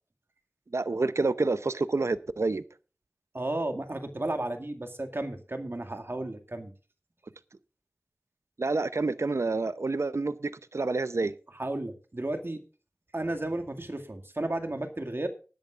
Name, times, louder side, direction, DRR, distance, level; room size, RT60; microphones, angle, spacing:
voice 1, 0.7-2.6 8.6-11.3, right 3 dB, 85° right, 0.7 m, -28 dB
voice 2, 3.3-6.7 11.5-12.6 13.1-15.3, right 1 dB, 55° right, 2.1 m, -33 dB
19.5 x 10.5 x 2.5 m
wide cardioid pair, 45°, 5 cm